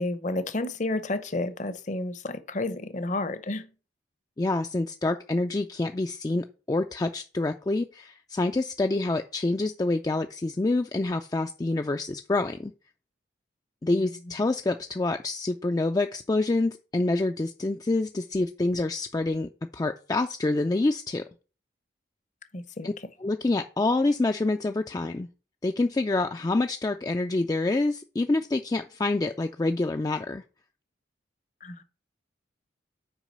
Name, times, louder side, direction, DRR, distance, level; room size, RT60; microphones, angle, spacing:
voice 1, 0.0-3.7 13.9-14.1 22.5-22.9 31.6-31.8, left 2 dB, 40° left, 0.7 m, -31 dB
voice 2, 4.4-12.7 13.8-21.2 22.8-22.9 23.2-25.3 25.6-30.4, left 2 dB, 20° left, 0.3 m, -27 dB
6.1 x 4.8 x 6.5 m
head